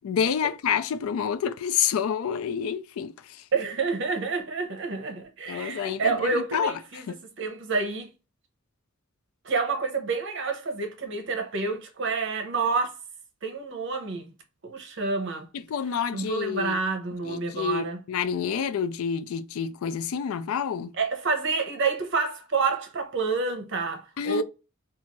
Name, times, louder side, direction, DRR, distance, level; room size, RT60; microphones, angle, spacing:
voice 1, 0.0-3.4 5.5-7.2 15.5-16.8 17.2-20.9 24.2-24.4, left 7 dB, 85° left, 0.3 m, -28 dB
voice 2, 3.5-7.0 7.4-8.1 9.4-13.0 13.4-14.3 14.6-15.5 16.1-18.0 21.0-24.4, right 4 dB, 60° right, 0.7 m, -28 dB
2.6 x 2.4 x 2.9 m
head